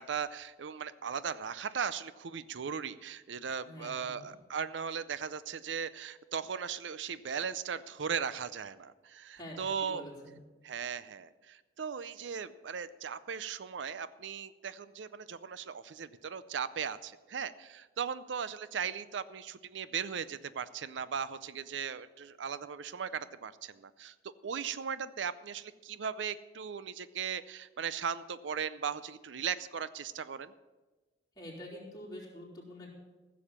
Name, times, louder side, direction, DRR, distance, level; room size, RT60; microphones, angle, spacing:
voice 1, 0.0-10.0 10.6-24.1 24.4-30.5, right 7 dB, 85° right, 16 dB, 0.5 m, -38 dB
voice 2, 3.6-4.3 9.3-10.4 31.4-32.9, left 1 dB, 20° left, -4 dB, 3.5 m, -47 dB
15.0 x 7.1 x 7.2 m, 1.2 s
head